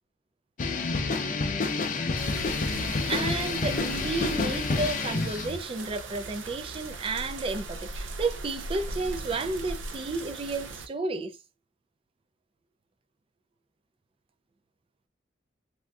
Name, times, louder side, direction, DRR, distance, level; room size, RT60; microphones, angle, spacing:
sound 1, 0.6-5.6, left 3 dB, 45° left, 0.5 m, -29 dB
sound 2, 2.2-10.9, right 2 dB, 90° right, 0.5 m, -39 dB
voice 1, 3.0-11.4, right 3 dB, 30° right, 0.3 m, -32 dB
3.4 x 2.5 x 2.3 m
head